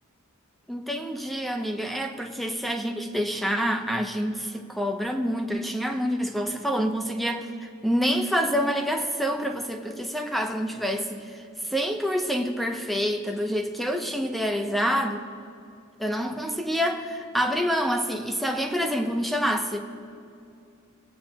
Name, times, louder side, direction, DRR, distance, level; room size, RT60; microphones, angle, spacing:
voice 1, 0.7-15.2 16.0-19.8, equal, ahead, 5 dB, 0.7 m, -27 dB
25.0 x 8.4 x 2.9 m, 2.5 s
head